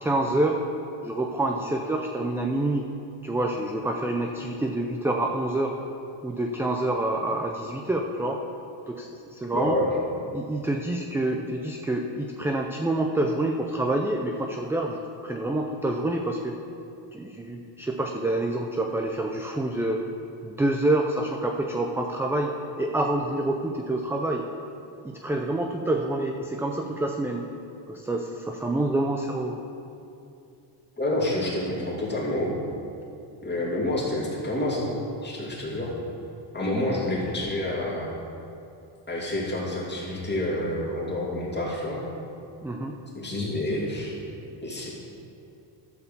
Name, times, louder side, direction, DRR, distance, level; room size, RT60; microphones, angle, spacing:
voice 1, 0.0-0.6 1.0-2.9 3.2-5.7 6.2-8.4 8.9-9.8 10.3-16.5 17.1-20.0 20.4-22.5 22.8-24.5 25.0-27.4 27.9-29.6 42.6-42.9, right 1 dB, 5° right, 2 dB, 0.3 m, -27 dB
voice 2, 9.5-9.9 31.0-32.6 33.4-35.9 36.5-38.1 39.1-42.0 43.1-44.2 44.6-44.9, left 1 dB, 20° left, -5 dB, 2.7 m, -28 dB
12.0 x 4.7 x 6.9 m, 2.7 s
cardioid pair, 120°, 48 cm